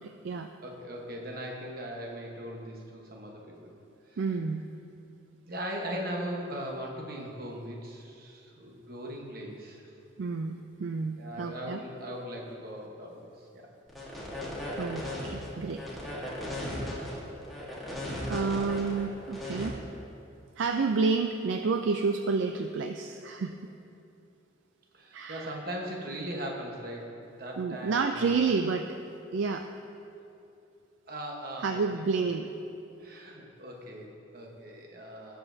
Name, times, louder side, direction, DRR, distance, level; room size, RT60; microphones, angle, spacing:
voice 1, 0.0-0.5 4.2-4.7 10.2-11.8 14.8-15.8 16.5-16.6 18.1-19.8 20.6-23.6 25.1-25.6 27.6-29.0 29.3-29.6 31.6-32.5, right 4 dB, 65° right, 5 dB, 0.4 m, -30 dB
voice 2, 0.6-3.7 4.1-4.2 5.5-9.9 11.2-13.7 16.6-17.0 24.9-28.2 31.1-31.8 32.1-32.2 33.0-35.4, equal, 45° right, 0 dB, 1.2 m, -39 dB
sound 1, 13.9-19.7, left 1 dB, ahead, 1.4 m, -36 dB
17.0 x 6.9 x 2.7 m, 2.7 s
head